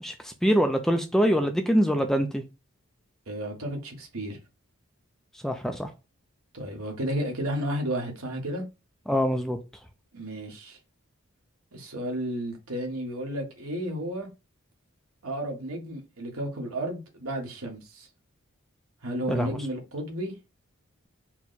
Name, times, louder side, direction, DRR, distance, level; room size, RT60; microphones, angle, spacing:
voice 1, 0.0-2.4 5.4-5.9 9.1-9.6 19.3-19.5, equal, ahead, 0.3 m, -24 dB
voice 2, 3.3-4.4 6.5-8.6 10.1-10.8 11.7-14.3 15.2-18.1 19.0-20.3, right 1 dB, 80° right, 1.4 m, -32 dB
4.5 x 2.1 x 4.0 m
head